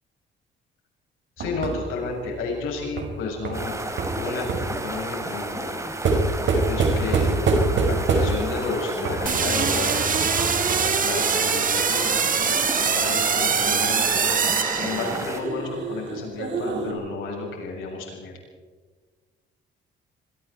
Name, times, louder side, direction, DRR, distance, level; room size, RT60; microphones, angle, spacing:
voice 1, 1.4-3.9 4.2-5.9 6.5-10.3 11.0-18.3, left 4 dB, 90° left, 0 dB, 7.9 m, -32 dB
sound 1, 1.4-4.8 6.0-8.6 9.0-11.0 13.1-16.9, right 3 dB, 65° right, 5.0 m, -26 dB
sound 2, 3.5-15.4, right 1 dB, 15° right, 3.0 m, -32 dB
sound 3, 9.3-15.5, right 6 dB, 45° right, 1.8 m, -23 dB
25.0 x 23.5 x 4.6 m, 1.5 s
cardioid pair, 90°, 20 cm